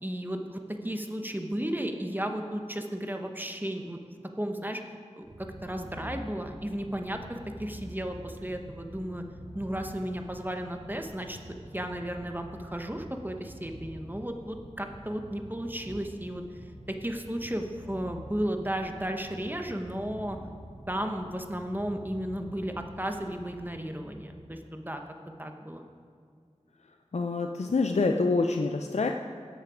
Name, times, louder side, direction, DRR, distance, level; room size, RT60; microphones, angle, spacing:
voice 1, 0.0-4.0 4.4-4.8 5.2-9.2 9.5-11.4 11.7-16.4 16.9-20.4 20.9-25.0 25.4-25.9, right 1 dB, 15° right, 4 dB, 1.0 m, -34 dB
Purr, 5.2-24.5, equal, 80° right, 2.1 m, -47 dB
voice 2, 27.1-29.1, left 3 dB, 65° left, 4 dB, 0.5 m, -26 dB
17.0 x 6.6 x 4.9 m, 2.2 s
wide cardioid pair, 45°, 12 cm